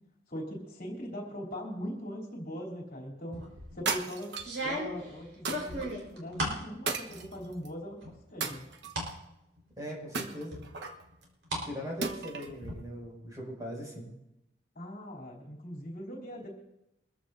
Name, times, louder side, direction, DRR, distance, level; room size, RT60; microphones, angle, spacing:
voice 1, 0.3-3.4 3.7-4.3 4.6-8.6 14.7-16.5, equal, 50° left, -2 dB, 3.2 m, -40 dB
sound 1, 3.3-3.8 4.4-6.7 7.1-7.7 8.0-9.1 9.6-9.7 10.5-11.7 12.0-12.7, right 1 dB, 80° right, 4.4 m, -36 dB
sound 2, 3.9-4.6 5.5-5.9 6.9-7.7 8.4-9.1 10.1-11.0 12.0-12.6, right 4 dB, 65° right, 1.2 m, -35 dB
voice 2, 9.8-10.6 11.6-14.1, equal, 20° right, -3 dB, 5.8 m, -40 dB
23.5 x 14.5 x 2.7 m, 0.88 s
head